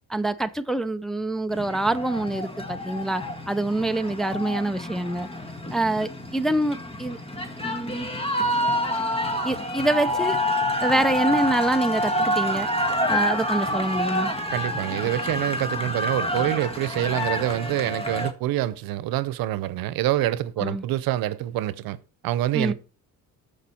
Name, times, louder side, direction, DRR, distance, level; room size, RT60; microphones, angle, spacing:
voice 1, 0.1-5.3 5.7-7.2 7.6-8.1 9.4-10.4 10.8-12.7 13.1-14.3 20.6-20.8 22.5-22.7, right 1 dB, ahead, 0.6 m, -25 dB
sound 1, 1.5-18.3, equal, 15° left, 1.5 m, -28 dB
voice 2, 14.5-22.0 22.2-22.7, right 14 dB, 90° right, 0.8 m, -26 dB
13.0 x 5.2 x 4.3 m
cardioid pair, 105°, 34 cm